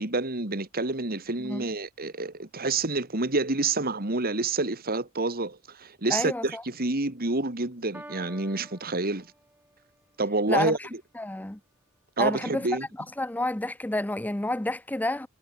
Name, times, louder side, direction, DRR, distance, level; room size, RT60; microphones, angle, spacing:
voice 1, 0.0-9.3 10.2-10.8 12.2-12.9, right 3 dB, 45° right, 2.4 m, -28 dB
voice 2, 6.1-6.6 10.5-10.9 11.2-11.6 12.2-12.7 13.2-15.3, left 1 dB, 10° left, 0.6 m, -29 dB
Piano, 7.9-9.9, right 1 dB, 10° right, 4.8 m, -48 dB
head